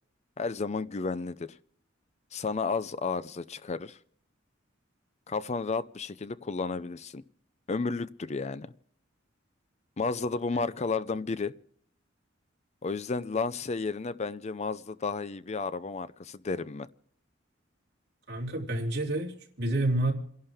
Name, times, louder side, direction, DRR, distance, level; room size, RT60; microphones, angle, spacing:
voice 1, 0.4-1.6 2.3-4.0 5.3-7.2 7.7-8.7 10.0-11.5 12.8-16.9, left 4 dB, 35° left, 0.5 m, -32 dB
voice 2, 18.3-20.1, right 1 dB, 60° right, 3.2 m, -29 dB
29.0 x 11.0 x 3.5 m
head